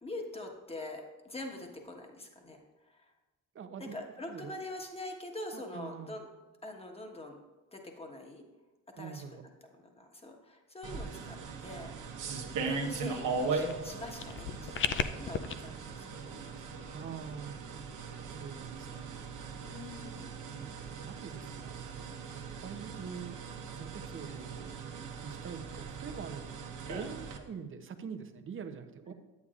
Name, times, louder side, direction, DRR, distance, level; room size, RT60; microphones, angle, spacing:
voice 1, 0.0-2.6 3.8-6.3 6.6-7.4 7.7-8.4 9.0-9.2 10.0-11.9 12.7-16.1 16.5-16.9 19.6-20.3 26.9-27.0, left 2 dB, 20° left, 2 dB, 1.3 m, -44 dB
voice 2, 3.5-4.0 4.3-4.5 5.5-6.2 9.0-9.4 16.9-17.6 18.2-19.4 20.6-23.4 23.7-24.8 25.2-26.6 26.9-29.1, right 6 dB, 40° right, 7 dB, 0.7 m, -45 dB
sound 1, 10.8-27.4, right 4 dB, 65° right, 1.1 m, -39 dB
sound 2, 13.6-15.5, left 7 dB, 40° left, 0.4 m, -35 dB
9.6 x 8.2 x 2.5 m, 1.2 s
cardioid pair, 90°, 33 cm